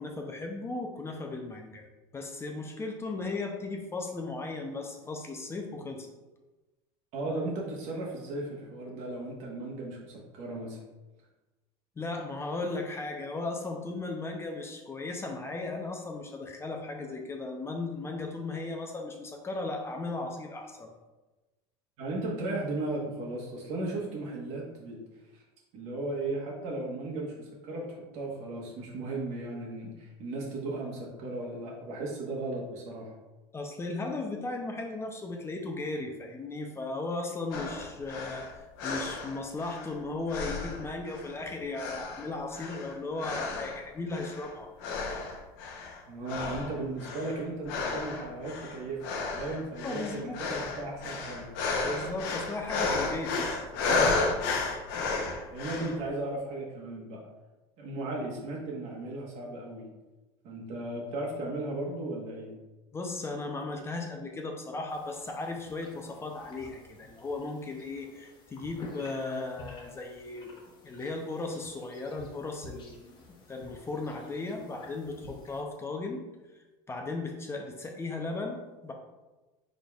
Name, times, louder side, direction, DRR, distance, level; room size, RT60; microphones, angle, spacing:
voice 1, 0.0-1.9 2.1-6.1 12.0-20.9 33.5-44.7 49.8-50.4 51.8-54.1 62.9-70.5 70.8-73.2 73.5-76.2 76.9-78.9, left 3 dB, 20° left, 2 dB, 0.6 m, -36 dB
voice 2, 7.1-10.8 22.0-25.0 25.3-25.4 25.7-33.1 46.1-49.0 49.3-51.5 55.5-57.2 57.8-59.8 60.4-62.5, right 2 dB, 60° right, -1 dB, 1.3 m, -36 dB
sound 1, 37.5-40.0 40.3-41.4 41.7-43.8 44.1-44.5 44.8-46.0 46.3-56.0, left 3 dB, 75° left, 0.9 m, -33 dB
sound 2, 64.9-75.6, left 2 dB, 35° left, 1.0 m, -51 dB
5.1 x 4.1 x 2.4 m, 1.1 s
supercardioid pair, 120°, 13 cm